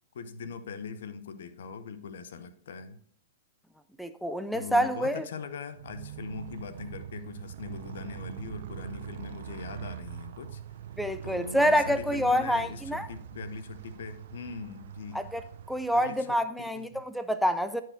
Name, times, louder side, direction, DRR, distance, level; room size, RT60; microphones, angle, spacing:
voice 1, 0.1-3.0 4.5-10.6 11.2-15.3 15.9-17.0, left 5 dB, 70° left, 0.8 m, -41 dB
voice 2, 4.0-5.2 11.0-13.1 15.1-15.4 15.7-17.8, equal, ahead, 0.4 m, -27 dB
Motorcycle, 5.7-16.4, right 10 dB, 60° right, 0.6 m, -43 dB
9.7 x 4.7 x 4.5 m
hypercardioid pair, 110°, 0 cm